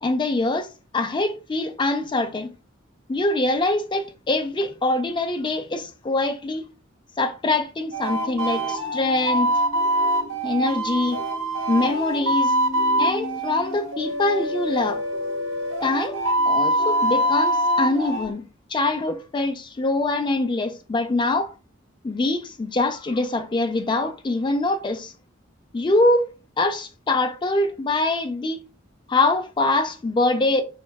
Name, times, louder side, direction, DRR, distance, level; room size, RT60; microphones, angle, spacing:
voice 1, 0.0-2.5 3.1-6.7 7.2-9.5 10.4-11.2 11.7-12.5 13.0-15.0 15.8-16.2 16.5-21.5 22.0-25.1 25.7-26.3 26.6-28.6 29.1-30.6, left 2 dB, 25° left, 0.3 m, -24 dB
sound 1, 7.9-18.3, right 1 dB, 90° right, 0.7 m, -24 dB
3.6 x 2.2 x 2.2 m
head